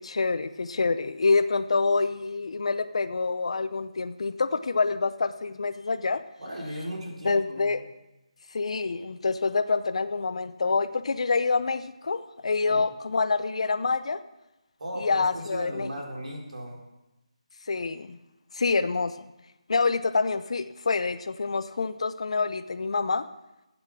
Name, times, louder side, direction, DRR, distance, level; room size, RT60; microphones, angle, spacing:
voice 1, 0.0-6.2 7.2-7.8 8.5-14.2 15.0-15.9 17.7-18.2 18.5-19.2 19.7-23.3, left 4 dB, 60° left, 11 dB, 0.6 m, -26 dB
voice 2, 6.4-7.7 12.7-12.8 14.8-16.8, equal, 75° right, 0 dB, 4.0 m, -36 dB
13.0 x 8.8 x 6.1 m, 0.97 s
figure-of-eight pair, 170°, 4 cm